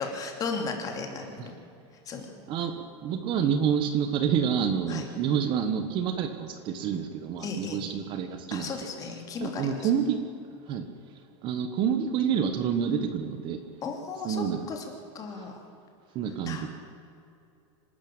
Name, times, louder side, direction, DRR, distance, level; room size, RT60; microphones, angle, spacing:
voice 1, 0.0-1.6 2.0-2.3 4.9-5.1 7.4-7.8 8.5-9.9 10.7-10.8 13.8-14.9 15.1-15.6 16.4-16.7, left 4 dB, 25° left, 3 dB, 3.0 m, -35 dB
voice 2, 2.5-8.7 9.4-10.2 10.7-10.8 11.4-13.6 14.2-14.6 15.4-15.5 16.1-16.7, right 8 dB, 35° right, 8 dB, 1.4 m, -28 dB
26.0 x 13.0 x 8.8 m, 2.6 s
supercardioid pair, 165°, 15 cm